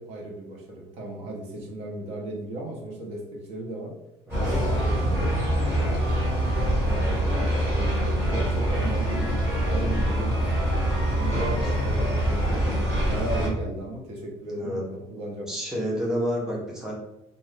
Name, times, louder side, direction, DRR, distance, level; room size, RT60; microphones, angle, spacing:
voice 1, 0.0-3.9 4.5-5.4 5.7-9.4 9.6-10.4 10.8-15.5, right 1 dB, 60° right, -1 dB, 0.9 m, -36 dB
sound 1, 4.3-13.5, right 1 dB, 20° right, 1.5 m, -24 dB
voice 2, 11.3-11.7 14.5-14.8 15.5-16.9, equal, 5° right, -4 dB, 0.6 m, -30 dB
2.5 x 2.5 x 3.3 m, 0.87 s
cardioid pair, 155°, 12 cm